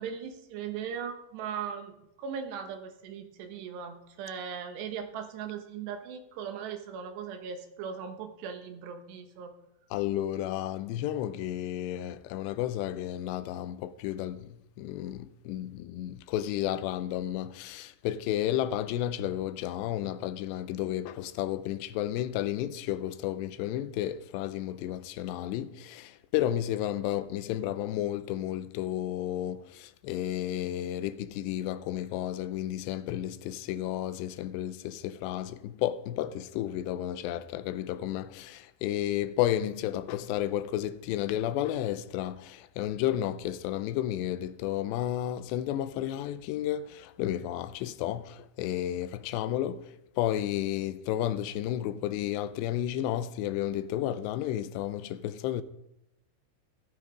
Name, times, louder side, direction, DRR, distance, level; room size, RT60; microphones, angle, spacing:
voice 1, 0.0-9.5, right 7 dB, 75° right, 3.4 m, -38 dB
voice 2, 9.9-55.6, left 12 dB, 85° left, 2.8 m, -32 dB
14.5 x 12.0 x 5.1 m
omnidirectional pair, 5.0 m